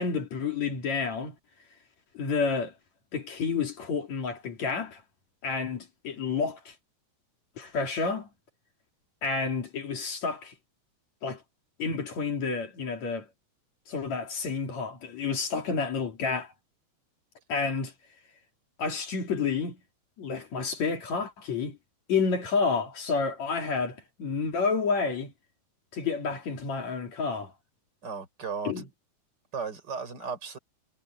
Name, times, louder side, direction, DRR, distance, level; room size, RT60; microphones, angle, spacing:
voice 1, 0.0-1.4 2.1-2.7 3.1-5.0 5.4-6.8 7.6-8.3 9.2-10.5 11.2-11.4 11.8-13.3 13.9-16.5 17.5-17.9 18.8-19.8 20.2-21.8 22.1-25.3 25.9-27.5 28.6-28.9, left 5 dB, 65° left, 4.0 m, -30 dB
voice 2, 28.0-28.7 29.5-30.6, right 5 dB, 35° right, 5.3 m, -35 dB
omnidirectional pair, 3.3 m